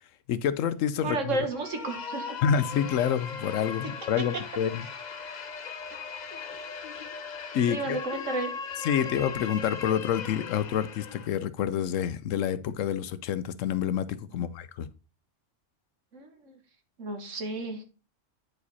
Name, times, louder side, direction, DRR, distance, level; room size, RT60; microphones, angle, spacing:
voice 1, 0.3-1.4 2.4-4.9 7.5-8.0 8.8-14.9, left 8 dB, 85° left, 1.0 m, -28 dB
voice 2, 1.0-2.4 7.7-8.5 14.4-14.5 16.1-16.6 17.0-17.8, right 2 dB, 75° right, 1.8 m, -32 dB
sound 1, 1.5-11.4, left 6 dB, 45° left, 0.7 m, -38 dB
9.2 x 4.9 x 4.1 m
omnidirectional pair, 1.3 m